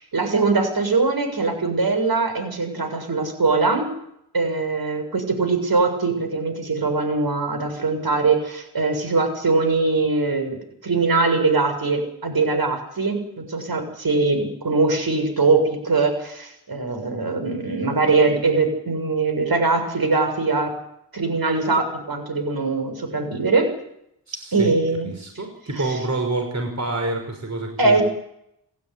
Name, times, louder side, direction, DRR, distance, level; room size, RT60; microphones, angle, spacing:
voice 1, 0.0-3.9 4.3-10.6 10.8-20.7 21.1-23.7 24.5-25.1 27.8-28.0, right 3 dB, 55° right, 6 dB, 7.2 m, -22 dB
voice 2, 24.3-24.8 25.1-28.0, right 2 dB, 40° right, 3 dB, 6.0 m, -27 dB
27.5 x 13.0 x 9.9 m, 0.75 s
cardioid pair, 65°, 43 cm